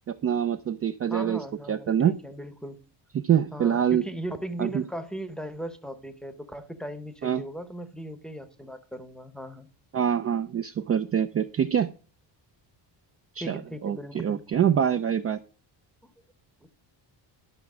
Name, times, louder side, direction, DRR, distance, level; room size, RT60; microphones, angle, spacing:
voice 1, 0.1-1.4 1.7-2.1 3.1-4.0 4.6-4.8 7.2-7.4 9.9-11.9 13.4-15.4, right 9 dB, 35° right, 0.4 m, -25 dB
voice 2, 1.1-2.8 3.5-9.7 13.4-14.4 16.0-16.1 16.6-16.7, right 1 dB, ahead, 0.8 m, -38 dB
12.0 x 5.8 x 6.0 m
cardioid pair, 175°, 44 cm